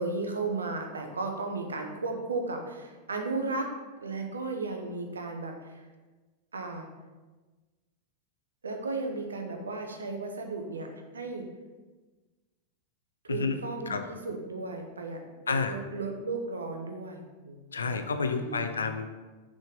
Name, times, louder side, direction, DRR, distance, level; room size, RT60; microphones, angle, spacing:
voice 1, 0.0-3.7 4.0-5.8 6.5-6.9 8.6-11.5 13.2-18.0 18.4-18.9, right 3 dB, 70° right, 4 dB, 0.8 m, -35 dB
voice 2, 15.5-15.8 17.7-19.1, left 4 dB, 70° left, 8 dB, 0.5 m, -30 dB
6.3 x 3.7 x 5.2 m, 1.3 s
figure-of-eight pair, 90°, 0 cm